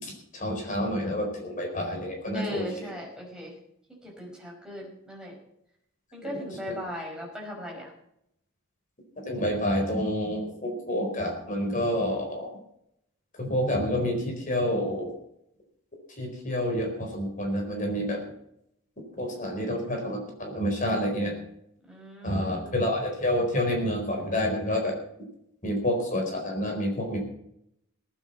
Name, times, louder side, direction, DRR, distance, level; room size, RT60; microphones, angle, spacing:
voice 1, 0.0-2.9 6.2-6.4 9.2-12.5 13.4-15.1 16.2-18.2 19.2-21.3 22.2-24.9 25.6-27.2, left 1 dB, 40° left, 2 dB, 4.5 m, -28 dB
voice 2, 2.3-3.6 4.0-5.4 6.1-7.9 21.9-22.9, equal, 5° right, -2 dB, 5.4 m, -38 dB
18.5 x 8.7 x 7.1 m, 0.75 s
head